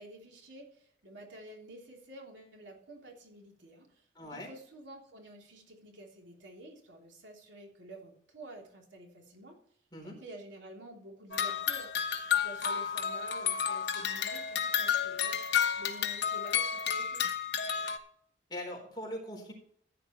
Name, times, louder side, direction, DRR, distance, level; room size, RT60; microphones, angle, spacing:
voice 1, 0.0-9.6 10.0-11.9 12.3-17.2, right 1 dB, 85° right, 0 dB, 3.3 m, -50 dB
voice 2, 4.1-4.5 9.9-10.2 18.5-19.5, left 1 dB, 25° left, 0 dB, 4.0 m, -41 dB
sound 1, 11.3-18.0, left 8 dB, 65° left, 1.1 m, -31 dB
14.5 x 9.9 x 3.2 m, 0.63 s
head